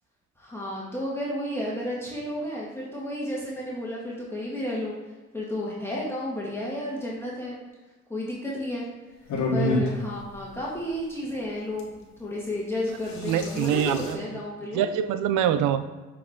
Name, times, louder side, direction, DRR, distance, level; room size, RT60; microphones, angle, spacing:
voice 1, 0.4-4.9 5.3-7.6 8.1-8.9 9.5-14.9, left 1 dB, 10° left, -5 dB, 1.7 m, -32 dB
sound 1, 9.3-9.9 11.8-11.9 12.9-14.1, left 1 dB, 65° left, 1.6 m, -28 dB
voice 2, 13.2-14.0 14.7-15.8, right 10 dB, 90° right, 10 dB, 0.5 m, -24 dB
7.2 x 4.8 x 3.6 m, 1.2 s
cardioid pair, 90°, 30 cm